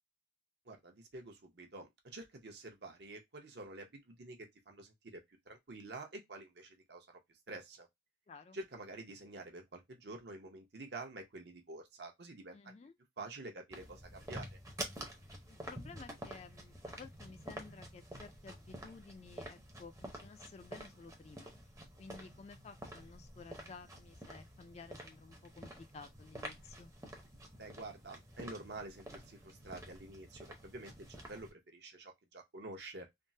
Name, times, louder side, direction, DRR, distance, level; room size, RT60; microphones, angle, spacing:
voice 1, 0.7-5.2 5.5-7.1 7.5-7.9 8.5-12.7 13.2-14.5 27.6-33.1, right 2 dB, 60° right, 0.8 m, -48 dB
voice 2, 8.3-8.6 12.5-12.9 15.5-21.5 22.0-26.9, left 4 dB, 35° left, 0.3 m, -54 dB
sound 1, 13.7-31.5, right 1 dB, 15° right, 0.6 m, -49 dB
3.5 x 2.1 x 2.6 m
head